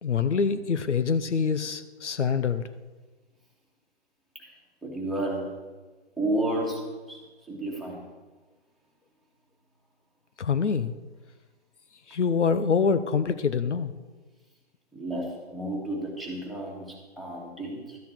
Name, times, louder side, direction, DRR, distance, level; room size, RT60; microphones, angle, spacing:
voice 1, 0.0-2.6 10.4-10.9 12.1-13.9, left 6 dB, 85° left, 13 dB, 0.8 m, -25 dB
voice 2, 4.8-5.5 6.2-8.0 14.9-18.0, right 1 dB, ahead, -3 dB, 1.8 m, -32 dB
13.0 x 9.4 x 4.5 m, 1.3 s
hypercardioid pair, 140°, 34 cm